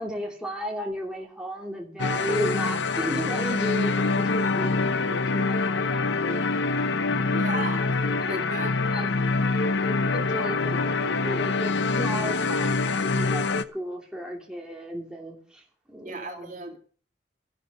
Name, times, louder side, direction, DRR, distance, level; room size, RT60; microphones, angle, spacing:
voice 1, 0.0-6.4 7.6-8.4 8.9-9.1 9.8-15.6 15.9-16.5, equal, 5° right, -1 dB, 3.0 m, -35 dB
sound 1, 2.0-13.6, left 3 dB, 75° left, 0.8 m, -25 dB
Mallet percussion, 4.4-6.2, left 6 dB, 20° left, 3.6 m, -45 dB
voice 2, 7.3-7.8 8.3-8.7 16.0-16.8, right 2 dB, 45° right, 3 dB, 2.4 m, -34 dB
14.5 x 12.0 x 5.5 m, 0.42 s
head